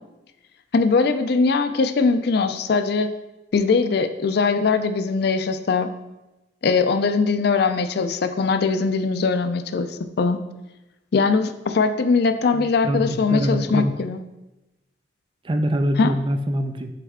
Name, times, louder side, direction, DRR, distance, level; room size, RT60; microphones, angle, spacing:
voice 1, 0.7-3.1 3.5-5.9 6.6-10.4 11.1-14.2 16.0-16.1, left 4 dB, 60° left, 9 dB, 0.4 m, -21 dB
voice 2, 12.5-13.9 15.4-16.9, equal, 25° right, 6 dB, 0.4 m, -24 dB
6.7 x 4.2 x 3.6 m, 0.99 s
head